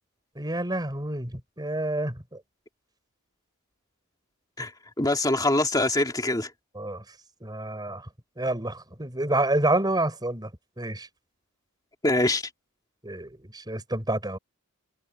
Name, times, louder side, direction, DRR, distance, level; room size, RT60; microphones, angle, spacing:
voice 1, 0.4-2.4 6.7-7.0 7.4-8.1 8.4-10.5 10.8-11.1 13.0-14.4, right 1 dB, 20° right, 5.6 m, -28 dB
voice 2, 5.0-6.5 12.0-12.4, left 2 dB, 15° left, 2.4 m, -23 dB
head